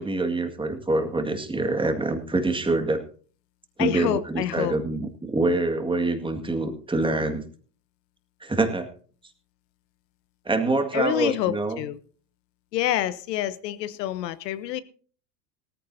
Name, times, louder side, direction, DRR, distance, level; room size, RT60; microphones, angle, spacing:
voice 1, 0.0-3.0 3.8-7.4 8.4-8.9 10.5-11.8, right 2 dB, 10° right, 2.0 m, -25 dB
voice 2, 3.8-4.8 10.9-12.0 12.7-14.8, left 13 dB, 85° left, 1.0 m, -27 dB
18.0 x 14.5 x 2.8 m
supercardioid pair, 105°, 48 cm